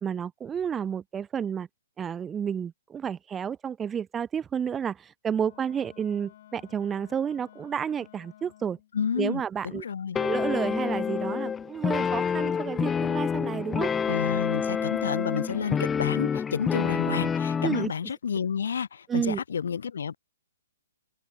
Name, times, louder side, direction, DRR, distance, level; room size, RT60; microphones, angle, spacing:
voice 1, 0.0-1.7 2.0-8.8 9.2-9.8 10.2-13.9 17.6-17.9 19.1-19.4, right 7 dB, 15° right, 1.5 m, -31 dB
Wind instrument woodwind instrument, 5.3-8.9, left 12 dB, 50° left, 5.6 m, -53 dB
voice 2, 8.9-10.2 14.1-20.1, left 7 dB, 75° left, 3.6 m, -30 dB
sound 1, 10.1-17.9, left 6 dB, 15° left, 0.7 m, -28 dB
open air
hypercardioid pair, 135°, 0 cm